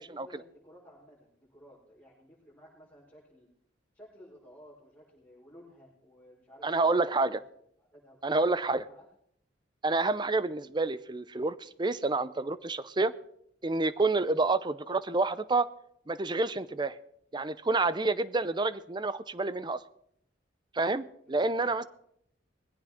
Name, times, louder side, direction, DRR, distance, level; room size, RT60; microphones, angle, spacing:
voice 1, 0.0-3.5 3.9-6.7 7.0-7.4 7.9-9.1 21.2-21.9, equal, 10° left, -7 dB, 5.0 m, -55 dB
voice 2, 6.6-7.4 8.2-8.8 9.8-13.1 13.6-15.7 16.1-17.0 17.3-19.8 20.7-21.8, right 3 dB, 25° right, 15 dB, 0.6 m, -28 dB
20.0 x 16.0 x 3.6 m, 0.71 s
head